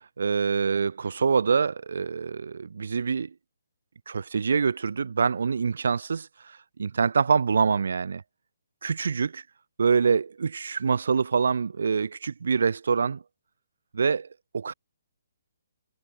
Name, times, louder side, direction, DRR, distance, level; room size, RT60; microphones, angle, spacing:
voice 1, 0.2-3.3 4.1-8.2 8.8-9.4 9.8-13.2 13.9-14.3 14.5-14.7, right 5 dB, 65° right, 2.6 m, -25 dB
figure-of-eight pair, 140°, 0 cm